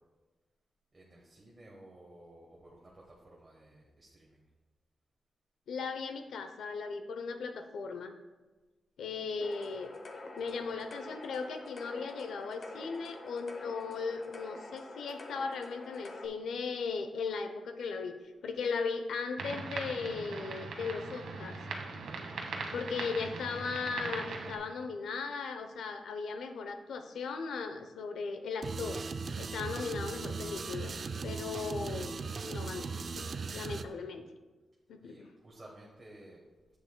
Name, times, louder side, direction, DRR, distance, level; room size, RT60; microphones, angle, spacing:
voice 1, 0.9-4.4 21.9-22.8 35.0-36.4, right 1 dB, 20° right, -3 dB, 1.1 m, -56 dB
voice 2, 5.7-8.2 9.0-9.9 10.4-18.1 18.4-21.6 22.7-29.0 29.4-30.9 31.2-32.2 32.5-34.3 34.9-35.3, left 5 dB, 90° left, 7 dB, 0.7 m, -37 dB
sound 1, 9.4-16.3, left 2 dB, 40° left, 0.8 m, -47 dB
sound 2, 19.4-24.6, right 4 dB, 90° right, 1.1 m, -40 dB
sound 3, 28.6-33.9, right 4 dB, 40° right, 0.3 m, -38 dB
10.5 x 8.0 x 2.2 m, 1.3 s
wide cardioid pair, 160°, 0 cm